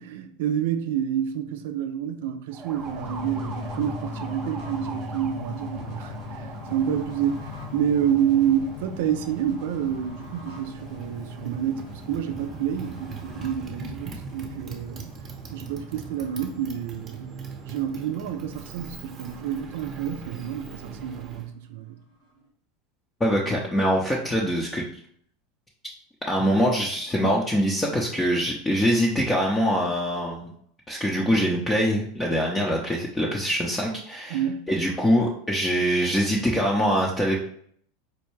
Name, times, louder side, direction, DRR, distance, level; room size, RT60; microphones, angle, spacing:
voice 1, 0.0-15.1 15.5-17.3 17.7-22.0 34.3-34.6, right 9 dB, 75° right, 0.4 m, -28 dB
Motorcycle, 2.5-21.5, right 5 dB, 30° right, 0.7 m, -41 dB
sound 1, 2.8-18.0 18.4-18.5 18.7-19.4, left 3 dB, 70° left, 1.3 m, -40 dB
voice 2, 23.2-24.8 26.3-30.5 30.9-34.4 34.7-37.4, equal, 15° left, 0.6 m, -23 dB
4.3 x 2.2 x 3.1 m
hypercardioid pair, 110°, 0 cm